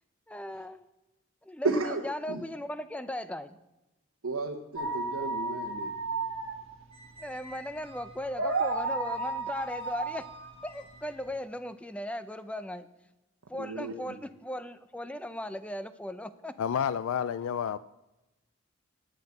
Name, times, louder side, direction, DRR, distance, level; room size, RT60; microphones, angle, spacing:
voice 1, 0.3-0.8 1.4-3.6 7.2-10.3 10.6-12.9 13.5-16.5, left 1 dB, 5° left, 12 dB, 0.5 m, -37 dB
voice 2, 1.6-2.0 2.3-2.4 4.2-5.9 13.5-13.9, right 3 dB, 85° right, 0 dB, 1.1 m, -32 dB
sound 1, 4.8-11.3, right 3 dB, 65° right, 1.5 m, -33 dB
Squeak, 6.9-11.4, right 3 dB, 25° right, 2.4 m, -51 dB
voice 3, 16.6-17.8, left 8 dB, 75° left, 16 dB, 0.3 m, -29 dB
9.1 x 7.8 x 8.6 m, 0.98 s
head